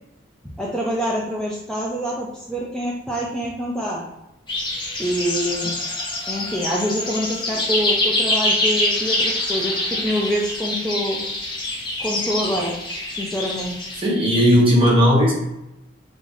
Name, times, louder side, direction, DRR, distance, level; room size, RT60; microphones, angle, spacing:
voice 1, 0.6-4.0 5.0-5.8 6.3-11.2 12.0-12.7 13.2-13.7, equal, 5° left, -5 dB, 0.4 m, -25 dB
sound 1, 4.5-14.0, left 1 dB, 25° left, 0.9 m, -25 dB
voice 2, 14.0-15.3, equal, 30° right, -5 dB, 1.1 m, -15 dB
4.7 x 2.6 x 2.5 m, 0.89 s
head